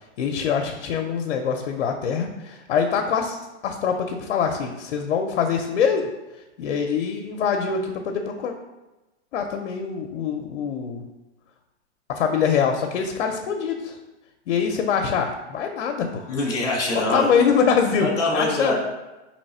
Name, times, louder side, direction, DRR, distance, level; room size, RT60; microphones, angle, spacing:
voice 1, 0.2-3.4 3.6-6.1 6.6-8.5 9.3-11.0 12.2-14.0 14.5-16.3 17.1-18.7, left 6 dB, 65° left, 4 dB, 0.6 m, -24 dB
voice 2, 16.3-17.3 18.0-18.7, left 2 dB, 10° left, -8 dB, 0.5 m, -24 dB
3.9 x 3.0 x 4.1 m, 1.1 s
hypercardioid pair, 165°, 36 cm